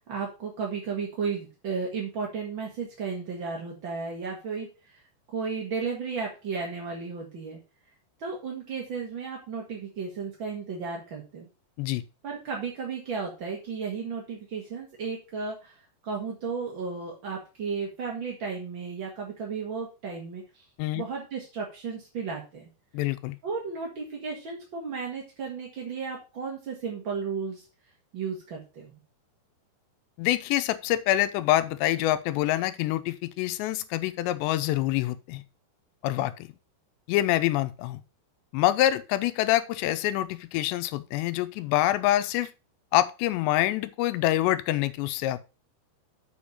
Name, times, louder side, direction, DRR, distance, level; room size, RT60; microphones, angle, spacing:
voice 1, 0.1-5.0 5.3-7.6 8.2-11.5 12.2-15.7 16.0-20.6 20.9-22.7 23.4-27.6 28.1-28.9, right 5 dB, 55° right, 1.3 m, -34 dB
voice 2, 22.9-23.4 30.2-35.4 36.0-36.5 37.1-38.0 38.5-42.5 42.9-45.4, left 14 dB, 85° left, 2.9 m, -26 dB
7.1 x 6.0 x 4.9 m
omnidirectional pair, 5.0 m